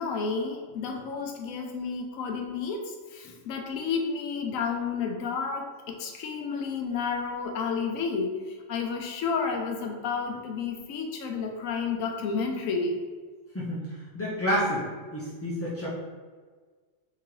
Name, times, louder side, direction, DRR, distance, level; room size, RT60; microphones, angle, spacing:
voice 1, 0.0-13.0, left 5 dB, 90° left, 3 dB, 1.0 m, -31 dB
voice 2, 13.5-14.8 15.1-15.9, equal, 25° left, -9 dB, 0.3 m, -29 dB
3.7 x 3.0 x 3.0 m, 1.5 s
omnidirectional pair, 1.4 m